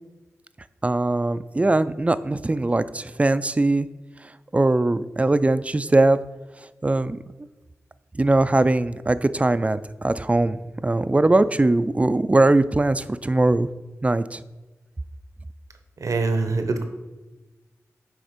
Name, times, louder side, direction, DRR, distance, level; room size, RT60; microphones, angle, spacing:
voice 1, 0.8-3.9 4.5-6.2 6.8-7.2 8.2-13.7 14.0-14.4, right 2 dB, 25° right, 13 dB, 0.3 m, -21 dB
voice 2, 16.0-16.8, right 3 dB, 75° right, 7 dB, 0.8 m, -23 dB
9.3 x 3.4 x 5.1 m, 1.1 s
cardioid pair, 60°, 6 cm